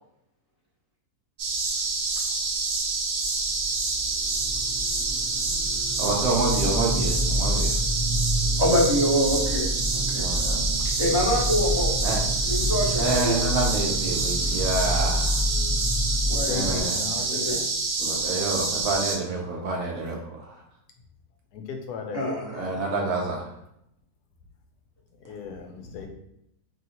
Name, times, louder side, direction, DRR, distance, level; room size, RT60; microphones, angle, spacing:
sound 1, 1.4-19.2, right 3 dB, 90° right, 1.3 m, -27 dB
sound 2, 3.2-16.8, equal, 25° left, 0.6 m, -29 dB
voice 1, 6.0-7.8 10.1-10.6 12.0-12.2 13.0-15.4 16.5-17.0 18.0-20.6 22.5-23.5, right 3 dB, 70° right, 0 dB, 0.9 m, -28 dB
voice 2, 8.6-10.2 11.0-11.9 12.4-13.4 16.3-16.8 17.2-17.6 22.1-22.6, equal, 20° right, -7 dB, 0.8 m, -25 dB
voice 3, 16.2-17.7 21.5-22.2 25.1-26.1, left 6 dB, 80° left, 3 dB, 1.1 m, -36 dB
3.0 x 2.7 x 2.8 m, 0.78 s
omnidirectional pair, 1.7 m